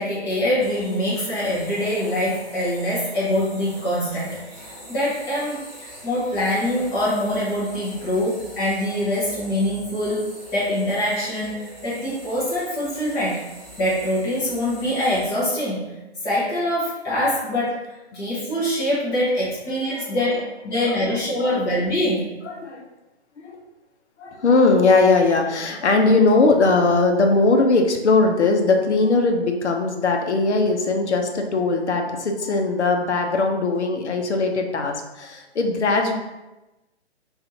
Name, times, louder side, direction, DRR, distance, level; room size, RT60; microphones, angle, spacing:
voice 1, 0.0-5.6 6.0-13.5 13.8-15.9 16.2-22.3, left 1 dB, 10° left, -8 dB, 0.6 m, -24 dB
sound 1, 0.6-15.3, equal, 5° right, 1.0 m, -42 dB
voice 2, 20.8-21.7 22.5-22.9 23.4-23.6 24.2-36.1, left 3 dB, 85° left, 3 dB, 0.7 m, -20 dB
2.6 x 2.4 x 4.0 m, 1.0 s
figure-of-eight pair, 140°, 33 cm